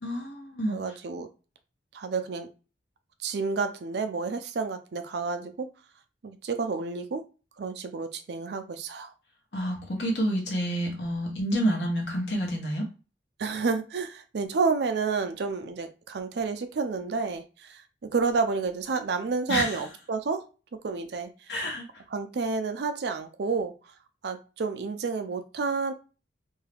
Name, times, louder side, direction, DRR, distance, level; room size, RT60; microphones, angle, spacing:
voice 1, 0.0-0.8 9.5-12.9 19.5-19.8 21.5-21.8, equal, 70° left, 1.1 m, -28 dB
voice 2, 0.7-1.3 1.9-2.5 3.2-5.7 6.2-7.2 7.6-9.1 13.4-17.8 18.1-20.4 20.8-21.3 22.1-23.7 24.2-25.9, right 4 dB, 65° right, 0.4 m, -30 dB
2.7 x 2.3 x 3.3 m
head